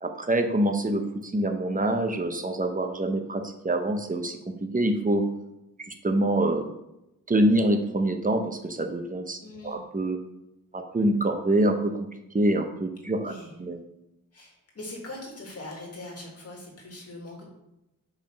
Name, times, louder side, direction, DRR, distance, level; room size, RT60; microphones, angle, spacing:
voice 1, 0.0-5.2 5.8-6.7 7.3-9.4 9.6-10.2 10.7-12.1 12.3-13.3 13.6-13.8, right 1 dB, 25° right, 6 dB, 0.8 m, -25 dB
voice 2, 9.4-9.8 13.2-13.5 14.3-17.5, left 2 dB, 45° left, -2 dB, 1.9 m, -41 dB
5.2 x 3.6 x 5.8 m, 0.89 s
wide cardioid pair, 95°, 33 cm